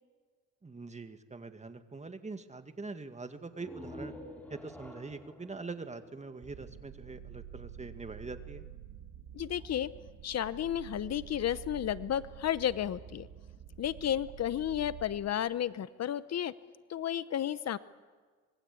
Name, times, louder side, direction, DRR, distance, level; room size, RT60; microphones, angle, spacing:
voice 1, 0.6-4.1 4.5-8.7, right 3 dB, 25° right, 8 dB, 2.0 m, -43 dB
sound 1, 3.5-7.1, left 1 dB, 5° left, 4.0 m, -49 dB
sound 2, 6.4-15.1, right 9 dB, 75° right, 2.7 m, -48 dB
voice 2, 9.3-9.9 10.2-13.3 13.8-16.5 16.9-17.8, left 10 dB, 55° left, 16 dB, 0.8 m, -32 dB
25.5 x 22.5 x 8.4 m, 1.5 s
cardioid pair, 90°, 30 cm